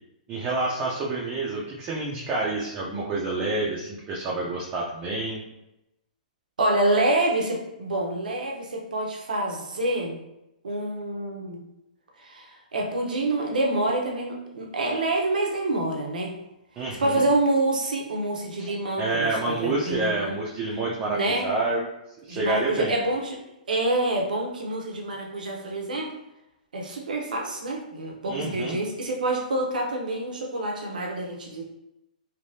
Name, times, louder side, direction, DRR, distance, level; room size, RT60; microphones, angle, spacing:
voice 1, 0.3-5.4 16.8-17.2 18.6-21.9 22.2-22.9 28.3-28.8, right 2 dB, 25° right, -4 dB, 0.5 m, -28 dB
voice 2, 6.6-10.2 10.6-11.6 12.2-16.3 17.0-20.3 21.1-21.5 22.3-23.4 23.7-26.1 26.7-31.6, right 2 dB, 80° right, 0 dB, 0.8 m, -27 dB
3.4 x 2.2 x 2.7 m, 0.91 s
hypercardioid pair, 135°, 4 cm